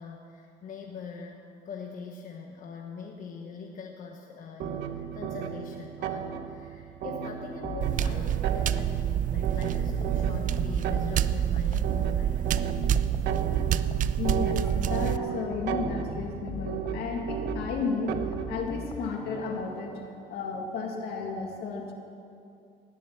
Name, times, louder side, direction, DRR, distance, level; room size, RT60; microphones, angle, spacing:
voice 1, 0.0-12.4, left 5 dB, 55° left, 1 dB, 1.1 m, -42 dB
sound 1, 4.6-18.7, right 9 dB, 80° right, 0.8 m, -35 dB
sound 2, 7.6-9.2 9.6-12.1 12.6-15.1 15.5-19.3, left 5 dB, 30° left, 0.5 m, -41 dB
sound 3, 7.8-15.2, right 10 dB, 50° right, 0.5 m, -27 dB
voice 2, 14.2-20.0 20.3-21.9, left 4 dB, 75° left, 2 dB, 2.1 m, -33 dB
18.5 x 7.1 x 7.4 m, 2.6 s
cardioid pair, 110°, 17 cm